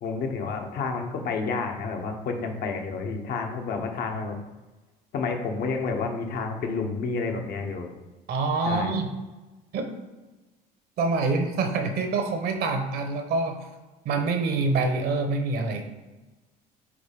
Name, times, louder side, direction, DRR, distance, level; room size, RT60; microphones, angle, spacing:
voice 1, 0.0-4.4 5.1-7.9 8.6-9.0, left 4 dB, 60° left, 4 dB, 1.1 m, -30 dB
voice 2, 8.3-9.1 9.7-9.9 11.0-13.7 14.0-15.9, right 3 dB, 60° right, 6 dB, 1.1 m, -26 dB
5.0 x 4.0 x 5.2 m, 1.2 s
cardioid pair, 100°, 18 cm